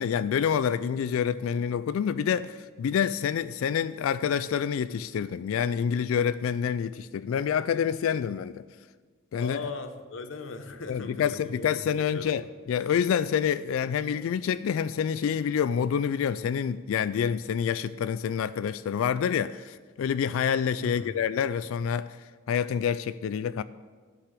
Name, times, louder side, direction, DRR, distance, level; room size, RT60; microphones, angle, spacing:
voice 1, 0.0-8.6 9.3-9.6 10.9-23.6, left 7 dB, 85° left, 0.3 m, -27 dB
voice 2, 9.4-12.5 20.8-21.2, left 3 dB, 65° left, 0.9 m, -39 dB
12.0 x 5.8 x 7.5 m
head